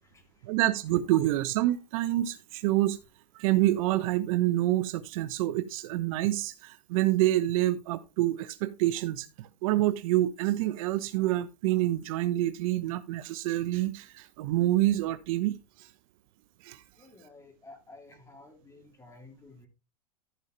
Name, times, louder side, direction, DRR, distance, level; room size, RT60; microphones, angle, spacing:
voice 1, 0.4-3.0 3.3-15.9 16.6-16.8, right 15 dB, 55° right, 1.0 m, -27 dB
voice 2, 17.0-19.7, left 2 dB, 15° left, 3.2 m, -52 dB
14.5 x 5.5 x 3.3 m
hypercardioid pair, 115°, 21 cm